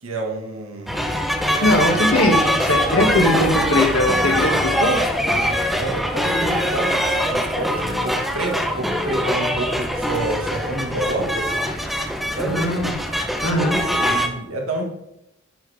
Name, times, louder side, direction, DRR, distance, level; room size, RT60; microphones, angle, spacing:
voice 1, 0.0-1.0 5.6-11.6 12.4-12.6 14.0-14.8, right 2 dB, 90° right, 0 dB, 1.7 m, -28 dB
sound 1, 0.9-14.3, equal, ahead, 0.7 m, -22 dB
voice 2, 1.6-5.0 12.4-12.9 13.4-13.8, left 1 dB, 80° left, 0 dB, 2.1 m, -20 dB
10.0 x 6.4 x 3.4 m, 0.83 s
head